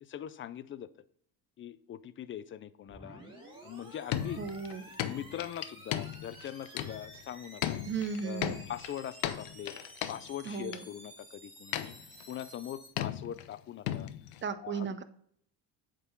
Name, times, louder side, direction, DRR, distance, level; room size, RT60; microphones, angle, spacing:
voice 1, 0.0-0.9 1.6-3.2 3.6-4.4 5.0-7.8 8.2-9.7 10.1-11.9 12.3-14.1 14.6-15.0, left 10 dB, 30° left, 15 dB, 0.4 m, -42 dB
sound 1, 2.9-12.9, right 1 dB, 10° right, 2.1 m, -52 dB
sound 2, 4.1-7.3 7.6-10.8 11.7-12.4 13.0-13.5 13.9-14.4, left 12 dB, 80° left, 0.7 m, -36 dB
voice 2, 4.4-4.8 7.8-8.6 10.4-10.8 14.4-15.0, right 6 dB, 30° right, 12 dB, 0.6 m, -35 dB
8.1 x 3.8 x 4.4 m, 0.67 s
cardioid pair, 100°, 41 cm